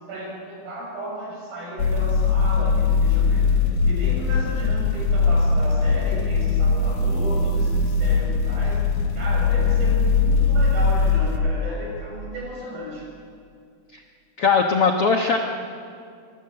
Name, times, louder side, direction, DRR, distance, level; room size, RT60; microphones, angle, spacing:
voice 1, 0.1-8.8 9.1-13.1, right 1 dB, 60° right, -2 dB, 8.6 m, -34 dB
sound 1, 1.8-11.4, left 4 dB, 55° left, 3.1 m, -20 dB
voice 2, 14.4-15.4, left 5 dB, 90° left, 3 dB, 1.2 m, -19 dB
25.0 x 24.0 x 7.9 m, 2.3 s
omnidirectional pair, 4.7 m